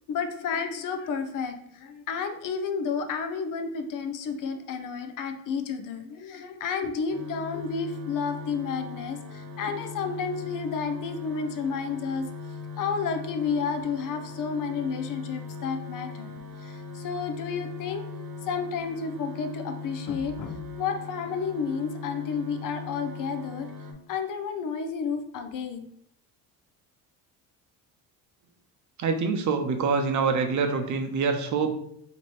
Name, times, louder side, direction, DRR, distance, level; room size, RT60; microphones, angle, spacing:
voice 1, 0.1-12.3 12.8-18.1 18.4-23.7 24.1-25.9, left 5 dB, 55° left, 7 dB, 0.6 m, -31 dB
sound 1, 7.1-23.9, left 4 dB, 70° right, 1.0 m, -39 dB
voice 2, 29.0-31.7, right 5 dB, 50° right, 6 dB, 0.7 m, -25 dB
3.1 x 2.9 x 4.3 m, 0.73 s
cardioid pair, 120°, 39 cm